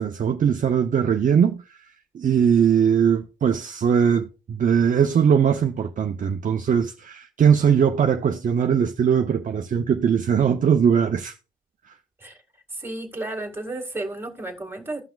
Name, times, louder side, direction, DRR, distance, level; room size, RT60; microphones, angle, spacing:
voice 1, 0.0-1.6 2.1-11.3, right 7 dB, 40° right, 0.6 m, -20 dB
voice 2, 12.7-15.0, right 2 dB, 10° right, 2.0 m, -32 dB
16.0 x 5.8 x 2.3 m
cardioid pair, 90°, 20 cm